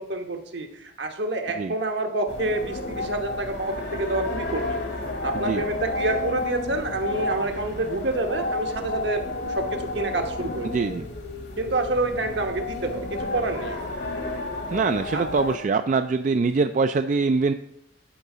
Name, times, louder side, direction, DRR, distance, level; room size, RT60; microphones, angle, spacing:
voice 1, 0.0-4.8 5.2-10.7 11.6-13.9 15.1-15.2, right 2 dB, 70° right, 4 dB, 1.2 m, -28 dB
sound 1, 2.3-15.6, left 2 dB, 65° left, 1.3 m, -31 dB
voice 2, 10.6-11.1 14.7-17.5, right 4 dB, 45° right, 9 dB, 0.3 m, -23 dB
11.0 x 4.6 x 5.0 m, 0.82 s
head